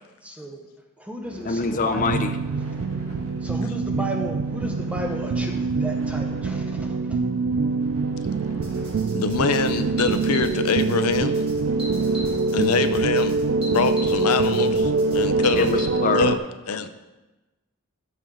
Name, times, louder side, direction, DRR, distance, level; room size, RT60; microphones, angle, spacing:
voice 1, 0.2-0.6 1.0-2.1 3.4-7.2, right 1 dB, 5° right, 3 dB, 0.8 m, -34 dB
sound 1, 1.2-15.7, right 1 dB, 75° right, 1.8 m, -44 dB
voice 2, 1.4-2.4 15.6-16.4 16.8-16.9, left 4 dB, 35° left, 8 dB, 0.6 m, -24 dB
sound 2, 2.0-16.4, right 3 dB, 55° right, 0.4 m, -24 dB
sound 3, 8.6-15.9, equal, 25° right, 2.2 m, -40 dB
voice 3, 9.1-11.4 12.5-13.4 13.7-15.7 16.2-16.4 16.7-16.9, left 5 dB, 80° left, 10 dB, 0.6 m, -24 dB
13.5 x 5.4 x 3.7 m, 1.1 s
head